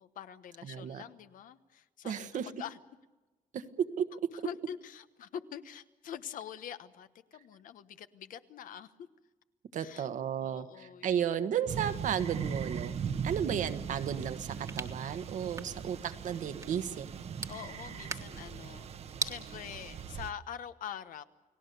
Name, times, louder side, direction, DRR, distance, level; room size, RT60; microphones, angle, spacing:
voice 1, 0.0-2.8 4.4-9.1 9.8-10.1 10.4-11.3 13.0-13.4 15.6-16.0 17.5-18.9 19.2-21.2, left 9 dB, 75° left, 12 dB, 1.2 m, -45 dB
voice 2, 0.6-1.0 2.0-2.5 3.5-3.6 4.0-4.1 9.7-13.0 13.2-17.1, right 8 dB, 65° right, 10 dB, 1.4 m, -34 dB
sound 1, 11.7-20.3, right 7 dB, 50° right, 1.0 m, -39 dB
sound 2, 14.2-19.4, right 4 dB, 25° right, 1.5 m, -43 dB
30.0 x 18.5 x 6.8 m, 1.2 s
cardioid pair, 160°, 14 cm